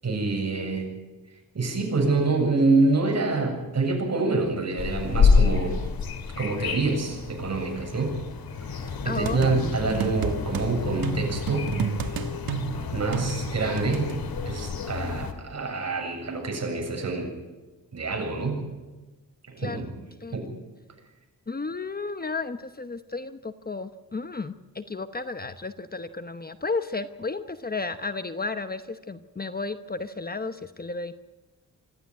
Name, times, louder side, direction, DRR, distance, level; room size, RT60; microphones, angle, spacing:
voice 1, 0.0-0.9 1.5-5.8 6.4-8.2 8.7-11.7 12.9-14.1 14.5-17.3 17.9-18.6 19.5-19.9 20.3-20.5, right 3 dB, 45° right, 2 dB, 7.8 m, -26 dB
sound 1, 4.8-15.3, left 5 dB, 90° left, 2.5 m, -28 dB
voice 2, 9.0-9.5 19.6-19.8 20.2-20.4 21.5-31.1, left 3 dB, 25° left, 10 dB, 1.0 m, -33 dB
sound 2, 9.3-10.7 11.0-14.2, right 6 dB, 80° right, 1.4 m, -30 dB
25.5 x 14.0 x 9.4 m, 1.2 s
wide cardioid pair, 105°, 35 cm